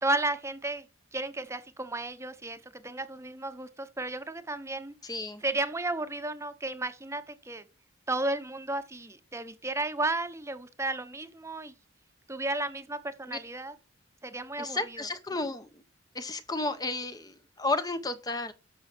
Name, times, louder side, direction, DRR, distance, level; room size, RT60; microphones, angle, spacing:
voice 1, 0.0-0.8 1.1-4.9 5.4-7.7 8.1-11.7 12.3-13.8 14.2-15.1, right 2 dB, 15° right, 0.9 m, -33 dB
voice 2, 5.0-5.4 13.3-13.4 14.6-15.7 16.1-18.5, left 2 dB, 20° left, 0.8 m, -32 dB
12.5 x 6.2 x 6.1 m
head